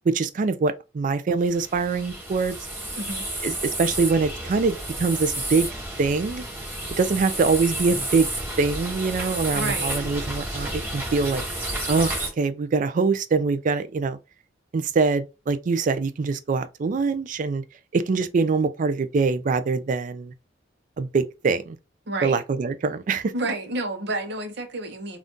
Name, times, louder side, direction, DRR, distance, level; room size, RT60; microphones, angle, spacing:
voice 1, 0.1-2.6 3.4-5.7 6.0-6.4 7.0-8.3 8.6-11.4 11.9-14.2 14.7-17.6 17.9-20.3 21.0-21.8 22.2-23.3, right 4 dB, 45° right, 0.3 m, -24 dB
sound 1, 1.4-12.3, right 1 dB, 10° right, 1.1 m, -31 dB
voice 2, 9.5-9.9 22.1-22.4 23.3-25.2, right 2 dB, 65° right, 0.7 m, -30 dB
2.6 x 2.4 x 3.5 m
head